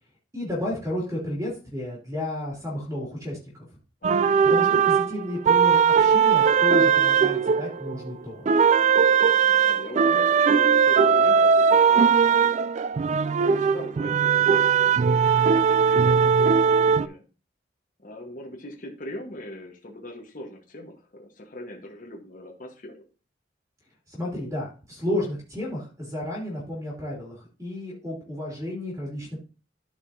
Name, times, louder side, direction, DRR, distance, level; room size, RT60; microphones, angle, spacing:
voice 1, 0.3-3.4 4.4-8.5 24.1-29.4, left 1 dB, 15° right, -3 dB, 2.7 m, -32 dB
voice 2, 4.0-4.4 9.4-12.5 13.3-15.0 15.5-17.2 18.0-23.0, left 1 dB, 45° left, 1 dB, 1.3 m, -40 dB
sound 1, 4.0-8.1 8.5-17.1, right 6 dB, 40° right, 0.3 m, -19 dB
14.0 x 4.8 x 2.7 m, 0.34 s
head